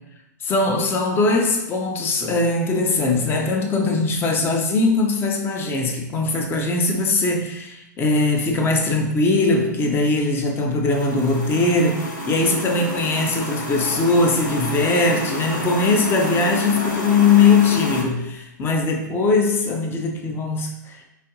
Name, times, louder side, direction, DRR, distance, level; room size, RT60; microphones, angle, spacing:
voice 1, 0.4-21.1, left 3 dB, 20° left, 3 dB, 0.5 m, -20 dB
sound 1, 10.9-18.0, left 1 dB, 85° left, 0.7 m, -29 dB
4.1 x 2.9 x 2.6 m, 0.88 s
hypercardioid pair, 115°, 10 cm